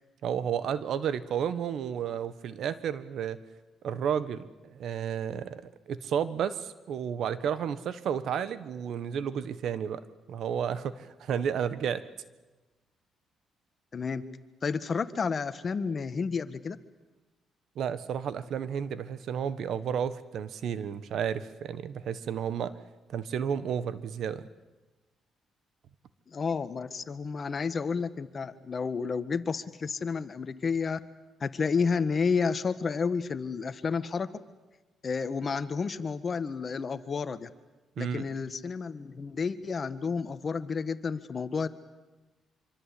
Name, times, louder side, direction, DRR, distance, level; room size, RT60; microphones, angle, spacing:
voice 1, 0.2-3.4 3.8-10.0 10.3-12.0 17.7-22.7 23.1-24.4 38.0-38.3, right 8 dB, 70° right, 14 dB, 1.4 m, -32 dB
voice 2, 13.9-14.2 14.6-16.8 26.3-31.0 31.4-34.3 35.0-37.5 38.0-41.7, left 5 dB, 40° left, 11 dB, 1.5 m, -31 dB
25.0 x 25.0 x 8.5 m, 1.1 s
cardioid pair, 90°, 0 cm